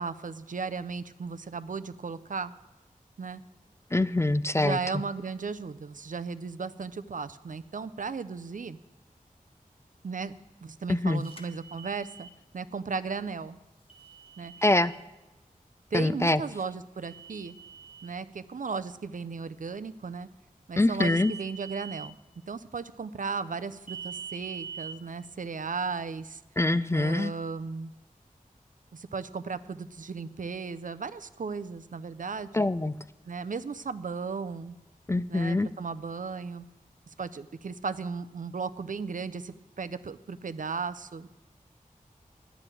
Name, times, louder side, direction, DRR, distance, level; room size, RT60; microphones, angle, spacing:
voice 1, 0.0-2.5 3.2-3.4 4.6-8.8 10.0-10.3 10.6-12.3 12.5-13.6 14.4-14.5 15.9-17.6 18.0-20.3 20.7-22.1 22.5-26.4 26.9-27.9 28.9-32.7 33.3-34.8 35.3-36.6 37.2-41.3, right 5 dB, 65° right, 13 dB, 0.5 m, -35 dB
voice 2, 3.9-4.8 10.9-11.2 14.6-14.9 15.9-16.4 20.8-21.3 26.6-27.3 32.5-32.9 35.1-35.7, left 2 dB, 20° left, 15 dB, 0.3 m, -24 dB
sound 1, 11.2-12.3 13.9-15.0 17.0-18.1 20.9-22.1 23.9-24.9, right 6 dB, 40° left, 1.2 m, -43 dB
11.0 x 6.1 x 9.0 m, 1.1 s
wide cardioid pair, 75°, 15 cm